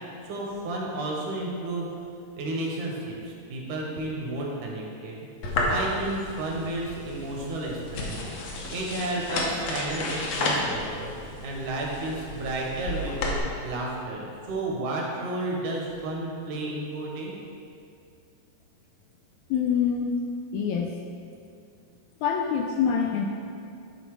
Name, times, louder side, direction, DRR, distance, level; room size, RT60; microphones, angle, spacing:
voice 1, 0.2-1.9 2.4-5.2 5.6-13.4 13.6-17.4, right 2 dB, 75° right, -2 dB, 2.6 m, -32 dB
sound 1, 5.4-13.4, left 2 dB, 65° left, 1.9 m, -32 dB
voice 2, 19.5-20.2 20.5-21.0 22.2-23.3, left 7 dB, 80° left, 1 dB, 1.7 m, -25 dB
11.5 x 3.9 x 4.6 m, 2.4 s
omnidirectional pair, 3.7 m